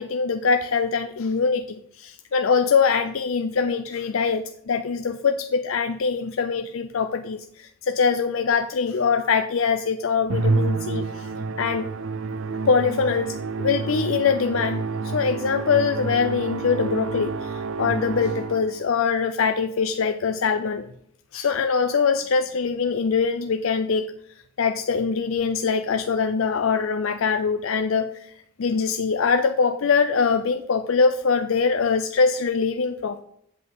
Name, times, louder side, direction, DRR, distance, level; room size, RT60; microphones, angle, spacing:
voice 1, 0.0-11.3 11.6-11.9 12.7-20.9 21.3-24.0 24.6-28.1 28.6-33.2, left 5 dB, 70° left, 8 dB, 0.5 m, -23 dB
Musical instrument, 10.3-18.8, right 4 dB, 70° right, 0.6 m, -28 dB
7.9 x 7.8 x 4.7 m, 0.72 s
head